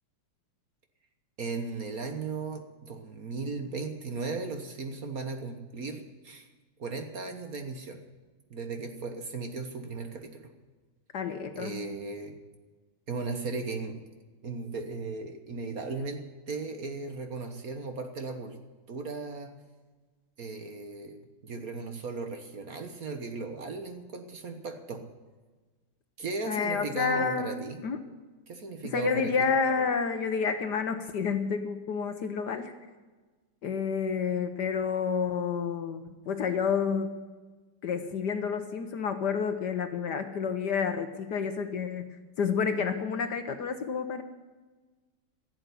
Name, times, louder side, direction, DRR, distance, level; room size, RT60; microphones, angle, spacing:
voice 1, 1.4-6.5 6.8-8.0 8.5-10.5 11.5-12.3 13.1-14.0 14.4-18.6 18.9-19.5 20.4-25.0 26.2-27.8 28.5-29.5, right 3 dB, 45° right, 6 dB, 1.5 m, -36 dB
voice 2, 11.1-11.8 26.5-28.0 28.8-32.7 33.6-37.2 37.8-42.1 42.4-44.2, left 6 dB, 60° left, 8 dB, 1.4 m, -29 dB
15.5 x 8.1 x 9.9 m, 1.3 s
omnidirectional pair, 2.3 m